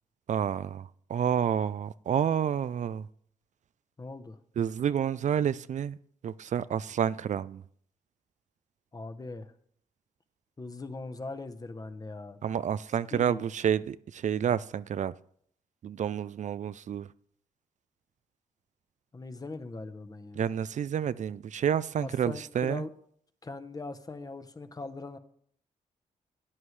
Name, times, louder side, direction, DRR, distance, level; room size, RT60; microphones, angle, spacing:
voice 1, 0.3-3.1 4.6-6.0 6.2-7.6 12.4-15.1 15.8-17.1 20.4-22.8, right 8 dB, 55° right, 16 dB, 0.4 m, -29 dB
voice 2, 4.0-4.4 8.9-9.5 10.6-12.4 13.1-13.4 19.1-20.5 22.0-22.9 23.4-25.2, left 3 dB, 25° left, 10 dB, 0.9 m, -40 dB
14.0 x 9.6 x 3.3 m, 0.64 s
cardioid pair, 85°, 15 cm